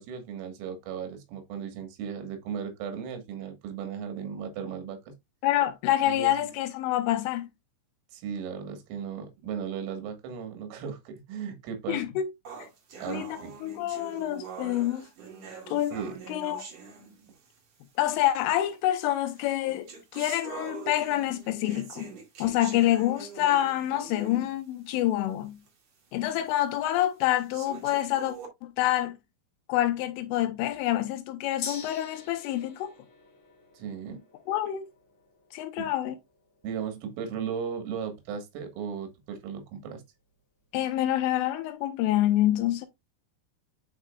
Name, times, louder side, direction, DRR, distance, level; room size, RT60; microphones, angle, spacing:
voice 1, 0.0-5.0 6.0-6.5 8.1-12.2 13.0-13.5 15.9-16.2 33.8-34.2 35.8-35.9 36.6-40.0, right 7 dB, 90° right, 4.2 m, -36 dB
voice 2, 5.4-7.5 11.9-12.3 12.6-12.7 13.1-15.1 15.7-16.0 16.3-16.7 18.0-22.1 22.4-25.6 26.1-28.4 28.6-29.2 29.7-32.9 34.5-34.9 35.5-36.2 40.7-42.9, left 13 dB, 85° left, 3.2 m, -27 dB
sound 1, 12.4-17.6 18.4-18.5 19.3-24.6 25.0-25.1 25.7-25.8 26.4-26.5 27.3-28.5, right 5 dB, 50° right, 2.1 m, -44 dB
Gong, 31.6-39.4 39.7-39.8, left 6 dB, 60° left, 1.8 m, -46 dB
9.9 x 4.7 x 2.3 m
omnidirectional pair, 5.8 m